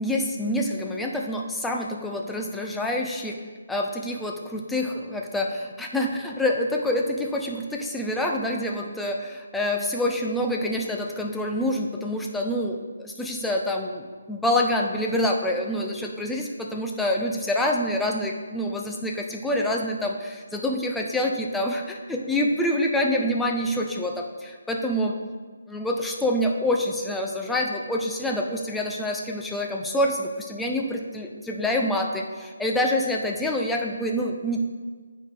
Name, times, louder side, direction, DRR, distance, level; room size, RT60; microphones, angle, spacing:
voice 1, 0.0-3.4 3.7-25.2 25.7-34.6, left 1 dB, 5° left, 1 dB, 0.5 m, -26 dB
8.5 x 5.1 x 3.5 m, 1.5 s
figure-of-eight pair, 145°, 0 cm